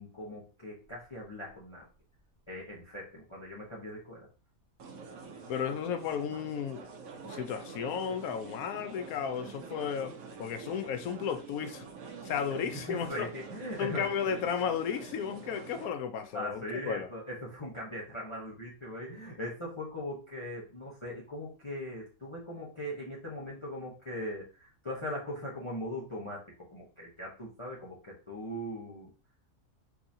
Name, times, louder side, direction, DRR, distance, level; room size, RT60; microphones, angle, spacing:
voice 1, 0.0-1.9 2.5-4.3 12.7-14.1 16.3-29.1, left 1 dB, 25° left, 0.8 m, -40 dB
sound 1, 0.8-0.9 1.2-1.3 1.6-1.7 4.8-15.9, right 4 dB, 80° right, 1.2 m, -46 dB
voice 2, 5.5-6.9 7.2-11.8 12.2-13.3 13.8-17.1, left 7 dB, 80° left, 1.1 m, -34 dB
4.6 x 2.9 x 2.6 m
omnidirectional pair, 1.5 m